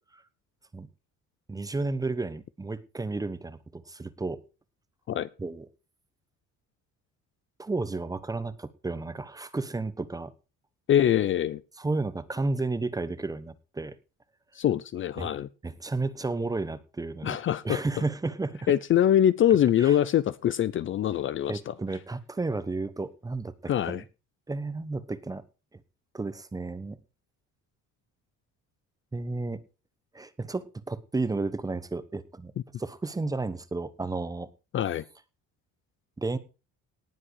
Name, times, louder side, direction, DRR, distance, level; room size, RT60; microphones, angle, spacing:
voice 1, 1.5-4.4 5.4-5.7 7.6-10.3 11.8-14.0 15.2-15.3 15.6-17.4 17.6-18.7 19.8-20.0 21.5-24.0 24.5-25.4 26.1-27.0 29.1-29.6 30.1-32.5 32.8-34.5 36.2-36.4, right 3 dB, 10° right, 1.0 m, -32 dB
voice 2, 10.9-11.6 14.5-15.5 17.2-17.8 18.7-21.7 23.7-24.0 34.7-35.0, left 11 dB, 40° left, 0.6 m, -24 dB
18.5 x 7.6 x 4.7 m
cardioid pair, 165°, 31 cm